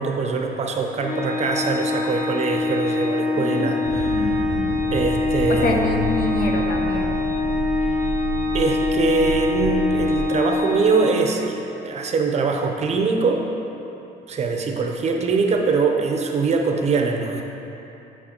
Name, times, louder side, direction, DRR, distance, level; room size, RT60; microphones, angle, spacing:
voice 1, 0.0-4.5 4.9-6.2 7.8-8.0 8.5-13.5 14.3-17.4, right 4 dB, 40° right, 3 dB, 0.7 m, -23 dB
Organ, 1.0-11.7, left 3 dB, 45° left, 1.1 m, -24 dB
voice 2, 3.3-3.7 4.0-4.8 5.5-7.1, left 2 dB, 65° left, 1 dB, 0.8 m, -26 dB
sound 1, 3.8-10.2, right 5 dB, 80° right, 0.6 m, -30 dB
9.6 x 5.5 x 2.8 m, 2.9 s
cardioid pair, 110°, 17 cm